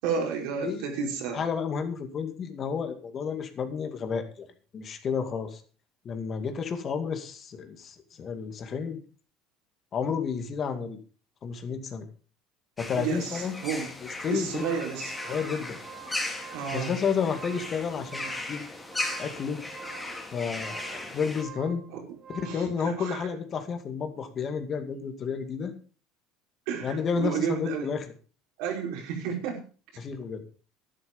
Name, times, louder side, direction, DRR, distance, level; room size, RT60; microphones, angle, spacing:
voice 1, 0.0-1.4 12.9-13.9 14.3-15.1 16.5-16.9 21.9-22.0 22.4-23.3 26.7-27.9 28.6-29.6, right 6 dB, 80° right, 1 dB, 5.1 m, -32 dB
voice 2, 1.3-4.5 4.7-5.6 6.0-9.0 9.9-11.0 11.4-12.1 12.8-13.5 14.0-14.7 15.3-15.8 16.7-18.6 19.2-19.6 20.3-21.8 22.3-25.7 26.8-28.1 30.0-30.4, left 6 dB, 35° left, 7 dB, 2.2 m, -31 dB
sound 1, 12.8-21.4, left 2 dB, 10° left, 3.0 m, -37 dB
sound 2, 14.3-22.8, right 10 dB, 35° right, 2.7 m, -47 dB
11.5 x 11.0 x 5.4 m, 0.39 s
cardioid pair, 130°, 0 cm